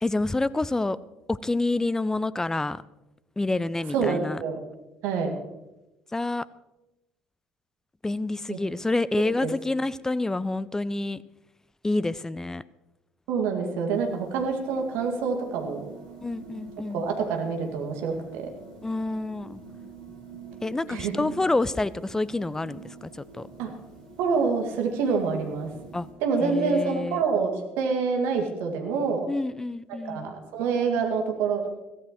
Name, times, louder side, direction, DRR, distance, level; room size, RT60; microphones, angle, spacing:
voice 1, 0.0-1.0 1.3-2.8 3.4-4.4 6.1-6.5 8.0-11.2 11.8-12.6 16.2-17.1 18.8-19.6 20.6-23.5 25.9-26.1 26.4-27.2 29.3-30.3, left 2 dB, 10° left, 19 dB, 0.5 m, -28 dB
voice 2, 3.9-4.6 5.0-5.3 8.5-8.6 9.4-9.5 13.3-15.8 16.9-18.5 20.9-21.1 23.6-23.7 24.2-25.7 26.2-29.3 29.9-31.7, right 5 dB, 60° right, 2 dB, 2.2 m, -26 dB
sound 1, 13.9-26.1, right 4 dB, 80° right, 3.6 m, -46 dB
22.0 x 15.5 x 3.1 m, 0.97 s
figure-of-eight pair, 55°, 4 cm